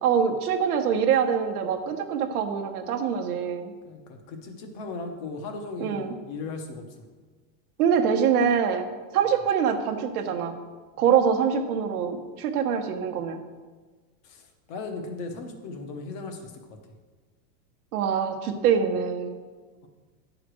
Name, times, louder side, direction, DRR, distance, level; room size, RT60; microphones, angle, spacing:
voice 1, 0.0-3.7 5.8-6.1 7.8-8.9 9.1-10.6 11.0-13.4 17.9-19.4, right 7 dB, 65° right, 6 dB, 1.0 m, -24 dB
voice 2, 3.8-6.9 14.2-16.8 19.8-19.9, left 3 dB, 30° left, 5 dB, 0.8 m, -37 dB
8.7 x 5.0 x 6.2 m, 1.4 s
supercardioid pair, 180°, 49 cm